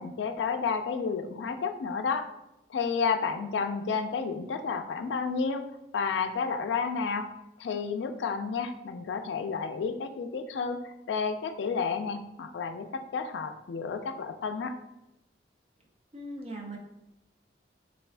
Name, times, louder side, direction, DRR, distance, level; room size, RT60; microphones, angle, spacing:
voice 1, 0.0-2.3 2.7-7.3 7.6-14.8, left 5 dB, 80° left, 8 dB, 0.3 m, -31 dB
voice 2, 16.1-16.8, right 1 dB, 35° right, 1 dB, 0.5 m, -39 dB
3.3 x 2.4 x 3.3 m, 0.93 s
head